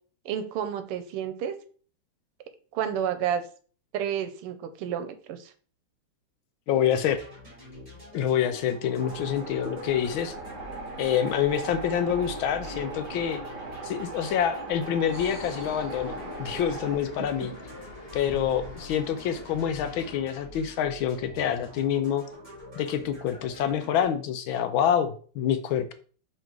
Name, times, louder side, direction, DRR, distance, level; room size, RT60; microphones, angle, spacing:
voice 1, 0.2-1.6 2.7-3.4 3.9-5.5 17.2-17.3, right 9 dB, 90° right, 10 dB, 1.7 m, -30 dB
voice 2, 6.7-7.2 8.1-10.3 11.0-13.4 13.8-17.5 18.1-22.2 22.8-25.9, left 9 dB, 75° left, 10 dB, 1.3 m, -27 dB
sound 1, 6.8-24.0, equal, 20° right, 2.5 m, -45 dB
sound 2, 9.0-17.0, right 3 dB, 55° right, 2.1 m, -39 dB
sound 3, 15.1-20.2, left 3 dB, 35° left, 1.1 m, -43 dB
5.5 x 3.8 x 4.6 m, 0.42 s
omnidirectional pair, 2.4 m